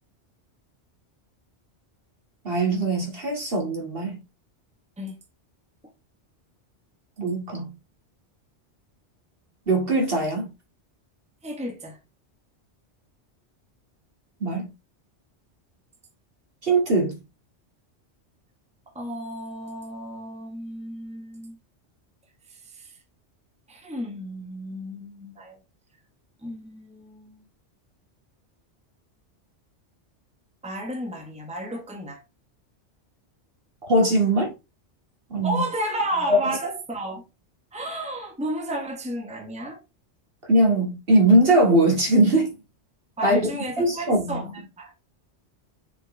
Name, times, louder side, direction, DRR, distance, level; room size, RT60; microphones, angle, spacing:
voice 1, 2.4-4.2 7.2-7.7 9.7-10.5 14.4-14.7 16.6-17.1 33.8-34.5 35.3-35.6 36.3-36.4 40.5-42.5 43.2-43.5 43.8-44.4, right 1 dB, 55° right, 2.7 m, -20 dB
voice 2, 11.4-12.0 18.9-21.6 22.5-23.0 23.7-25.6 26.4-27.4 30.6-32.2 35.4-37.2 37.7-39.8 43.2-44.9, right 1 dB, 5° right, 1.3 m, -32 dB
6.6 x 5.4 x 3.4 m
omnidirectional pair, 1.2 m